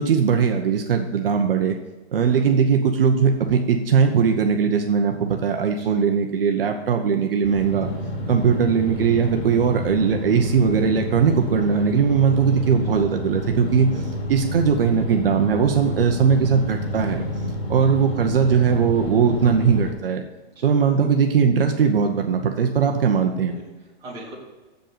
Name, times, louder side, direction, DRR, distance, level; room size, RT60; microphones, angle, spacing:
voice 1, 0.0-1.8 2.1-7.9 8.3-13.9 14.3-17.3 17.7-20.2 20.6-23.5, right 6 dB, 60° right, 4 dB, 0.9 m, -19 dB
voice 2, 2.1-2.5 5.8-5.9 8.2-8.4 13.9-14.2 17.8-17.9 20.5-20.6 23.5-24.3, right 1 dB, 10° right, -7 dB, 2.0 m, -42 dB
sound 1, 7.4-19.9, left 1 dB, 75° left, 2.5 m, -29 dB
7.7 x 5.2 x 6.8 m, 1.1 s
hypercardioid pair, 180°, 31 cm